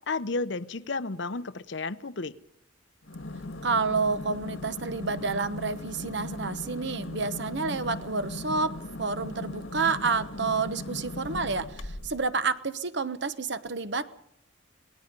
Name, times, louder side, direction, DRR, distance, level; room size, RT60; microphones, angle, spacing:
voice 1, 0.1-2.3, left 3 dB, 60° left, 14 dB, 0.8 m, -32 dB
sound 1, 3.0-12.2, left 2 dB, 80° left, 1.8 m, -38 dB
voice 2, 3.6-14.1, right 4 dB, 60° right, 12 dB, 1.1 m, -29 dB
26.5 x 19.0 x 5.3 m, 0.75 s
head